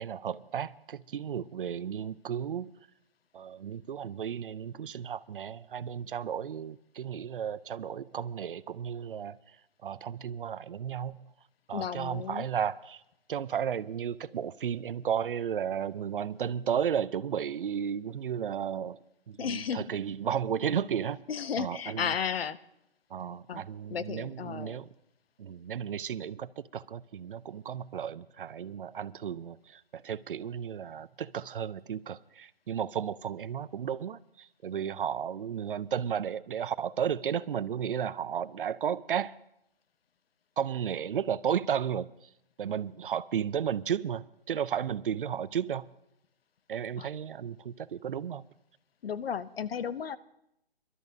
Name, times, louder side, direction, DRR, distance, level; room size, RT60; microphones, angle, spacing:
voice 1, 0.0-2.7 3.3-9.4 9.8-11.3 11.7-13.0 13.3-19.0 19.3-21.2 21.6-22.2 23.1-24.9 25.4-39.3 40.6-42.3 42.6-45.9 46.7-48.4, right 8 dB, 60° right, 0.5 m, -33 dB
voice 2, 11.7-12.5 19.4-19.8 21.3-22.6 23.5-23.6 23.9-24.8 47.0-47.1 49.0-50.2, left 7 dB, 70° left, 0.7 m, -33 dB
24.0 x 12.5 x 2.7 m
hypercardioid pair, 165°, 31 cm